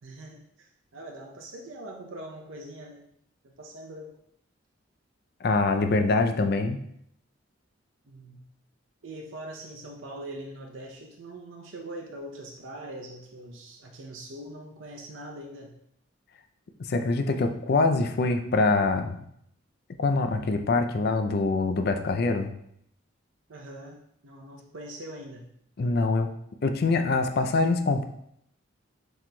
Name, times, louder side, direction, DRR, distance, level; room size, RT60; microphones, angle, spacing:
voice 1, 0.0-3.0 3.4-4.1 8.1-8.4 9.0-15.8 23.5-25.4, right 1 dB, 80° right, 1 dB, 0.6 m, -42 dB
voice 2, 5.4-6.8 16.9-19.2 20.0-22.5 25.8-26.3 26.6-28.0, left 3 dB, 55° left, 6 dB, 0.4 m, -24 dB
7.6 x 3.1 x 2.2 m, 0.71 s
head